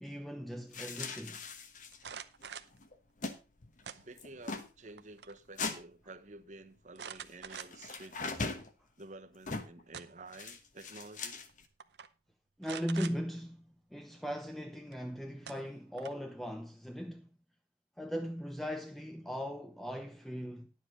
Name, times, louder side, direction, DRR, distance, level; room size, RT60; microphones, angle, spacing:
voice 1, 0.0-1.4 12.6-17.3 18.0-20.7, equal, ahead, 0.6 m, -39 dB
sound 1, 0.7-2.1 2.4-2.5 2.7-3.4 3.6-3.8 4.2-4.7 5.6-5.8 7.5-8.7 9.5-9.8 10.3-11.6, left 3 dB, 45° left, 1.2 m, -40 dB
sound 2, 1.9-2.8 3.8-4.5 4.9-5.4 5.6-5.7 7.0-8.0 8.5-8.6 9.6-10.3 11.3-11.5 11.8-12.1 12.6-13.2 14.9-15.0 15.5-16.3, right 7 dB, 65° right, 0.8 m, -46 dB
voice 2, 3.9-8.2 9.0-11.4, right 2 dB, 45° right, 1.0 m, -51 dB
11.0 x 7.5 x 4.7 m
head